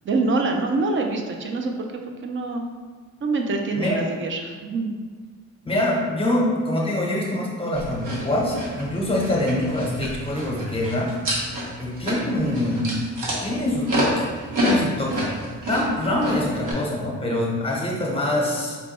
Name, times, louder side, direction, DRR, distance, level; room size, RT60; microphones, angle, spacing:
voice 1, 0.0-1.9 2.2-2.6 3.2-5.0, right 3 dB, 40° right, 3 dB, 0.5 m, -25 dB
voice 2, 5.6-11.1 11.8-12.9 13.4-14.3 14.6-15.4 15.7-18.8, left 1 dB, 20° left, -3 dB, 0.8 m, -24 dB
sound 1, 7.7-16.7, equal, 85° right, 1.0 m, -29 dB
4.3 x 2.2 x 4.0 m, 1.5 s
wide cardioid pair, 155°, 31 cm